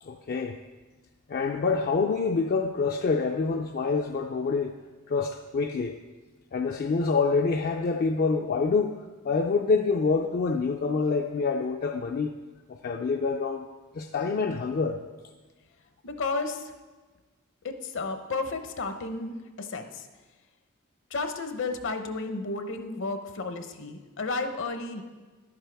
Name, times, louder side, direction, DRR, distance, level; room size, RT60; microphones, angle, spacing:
voice 1, 0.0-0.6 1.3-4.8 5.1-6.0 6.5-12.3 12.7-13.7 13.9-15.0, left 4 dB, 45° left, 4 dB, 0.4 m, -26 dB
voice 2, 16.0-16.7 17.6-20.1 21.1-25.0, left 3 dB, 65° left, 7 dB, 0.8 m, -32 dB
11.5 x 8.8 x 3.4 m, 1.3 s
head